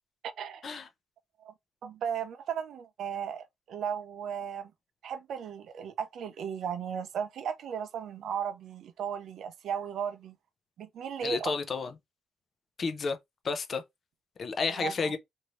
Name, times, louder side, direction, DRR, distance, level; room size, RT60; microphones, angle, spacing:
voice 1, 0.2-0.7 1.4-1.5 1.8-4.7 5.0-10.3 10.8-11.5 14.7-15.1, right 7 dB, 60° right, 0.4 m, -36 dB
voice 2, 11.2-11.9 12.8-13.2 13.4-13.8 14.4-15.2, left 5 dB, 35° left, 0.5 m, -31 dB
2.9 x 2.6 x 3.0 m
cardioid pair, 145°, 0 cm